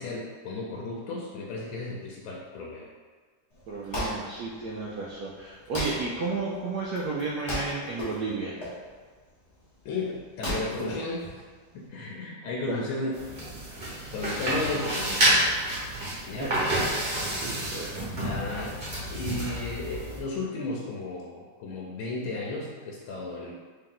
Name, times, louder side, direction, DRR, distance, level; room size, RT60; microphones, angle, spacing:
voice 1, 0.0-2.9 9.8-11.2 11.7-13.2 14.1-15.7 16.3-16.6 17.3-17.5 18.2-23.5, left 3 dB, 80° left, -3 dB, 1.4 m, -34 dB
Wood, 3.5-11.9, equal, 35° left, 0.4 m, -37 dB
voice 2, 3.7-8.5 12.7-12.8 16.1-16.5 17.0-18.1, right 3 dB, 80° right, -5 dB, 0.9 m, -33 dB
sound 1, 13.1-20.2, right 1 dB, 35° right, 0.9 m, -29 dB
3.7 x 2.8 x 3.8 m, 1.5 s
omnidirectional pair, 2.2 m